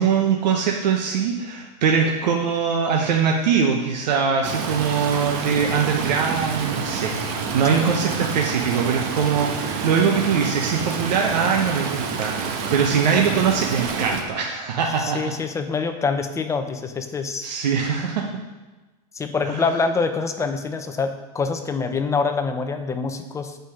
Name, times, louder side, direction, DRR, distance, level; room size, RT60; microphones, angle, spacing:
voice 1, 0.0-15.3 17.4-18.3 19.4-19.6, right 6 dB, 85° right, 1 dB, 1.1 m, -22 dB
Stream, 4.4-14.2, right 5 dB, 45° right, 1.3 m, -28 dB
voice 2, 15.0-17.5 19.1-23.6, left 4 dB, 15° left, 7 dB, 0.7 m, -25 dB
8.7 x 5.4 x 6.4 m, 1.2 s
supercardioid pair, 135°, 21 cm